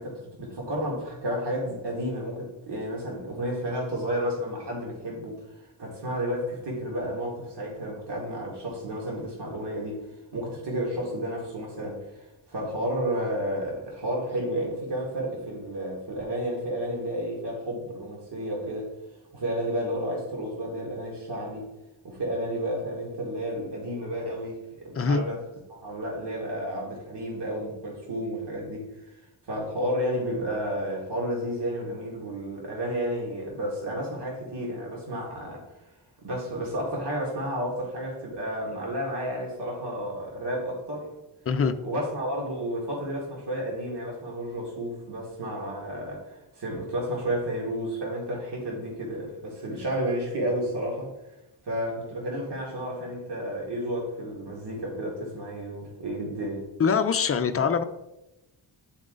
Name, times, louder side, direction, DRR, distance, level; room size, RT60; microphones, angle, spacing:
voice 1, 0.0-18.9 19.3-21.6 22.0-25.4 25.7-29.2 29.5-35.7 36.2-41.1 41.8-51.1 51.6-56.7, equal, 65° right, -2 dB, 2.0 m, -31 dB
voice 2, 56.8-57.8, left 5 dB, 35° left, 8 dB, 0.5 m, -23 dB
9.9 x 3.8 x 3.8 m, 0.94 s
wide cardioid pair, 115°, 44 cm